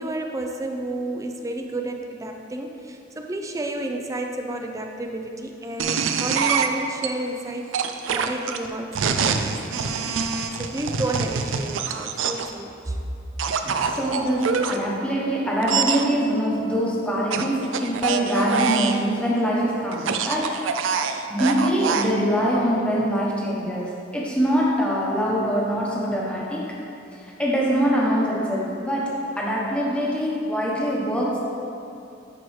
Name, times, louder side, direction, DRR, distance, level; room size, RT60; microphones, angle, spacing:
voice 1, 0.0-7.7 8.1-10.1 10.6-13.0, right 1 dB, 15° right, 3 dB, 0.4 m, -31 dB
sound 1, 5.8-7.1 7.7-12.5 13.4-14.8 15.6-16.0 17.3-19.0 19.9-22.1, right 6 dB, 80° right, 0.4 m, -25 dB
voice 2, 13.6-20.6 21.3-26.8 27.4-31.4, equal, 5° left, -5 dB, 1.1 m, -24 dB
10.5 x 4.6 x 3.2 m, 2.7 s
head